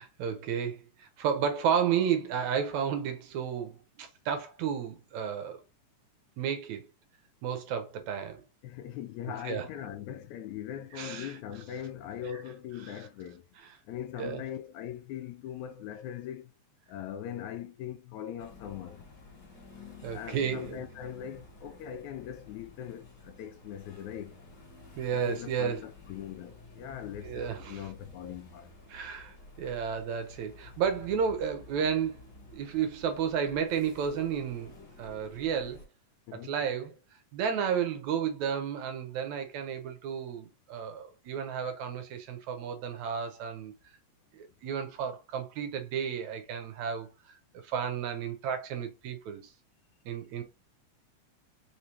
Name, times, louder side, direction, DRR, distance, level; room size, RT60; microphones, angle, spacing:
voice 1, 0.0-5.6 6.4-6.8 7.4-8.4 9.4-9.7 10.9-11.4 12.8-13.0 14.2-14.4 20.0-20.8 25.0-25.8 27.2-27.9 28.9-32.2 32.5-35.8 36.3-37.0 37.3-43.7 44.3-47.4 47.6-49.5 50.1-50.4, right 7 dB, 70° right, 2.0 m, -32 dB
voice 2, 8.6-13.5 13.9-16.5 16.9-19.1 20.1-24.4 25.1-28.7 36.3-36.5, left 10 dB, 80° left, 1.9 m, -41 dB
sound 1, 18.4-35.9, left 2 dB, 40° left, 1.8 m, -51 dB
5.0 x 3.2 x 2.8 m
omnidirectional pair, 3.6 m